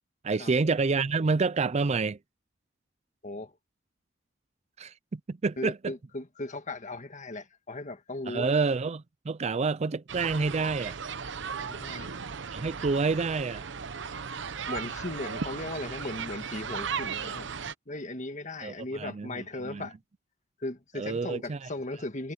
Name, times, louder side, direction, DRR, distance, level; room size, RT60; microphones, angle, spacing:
voice 1, 0.2-2.2 4.8-5.9 8.3-11.0 12.5-13.6 18.6-19.9 21.0-21.6, right 4 dB, 35° right, 0.4 m, -28 dB
voice 2, 5.6-8.5 11.6-12.2 14.7-17.5 17.9-20.0 20.6-22.3, left 2 dB, 40° left, 1.7 m, -37 dB
sound 1, 10.1-17.7, right 6 dB, 65° right, 0.8 m, -36 dB
head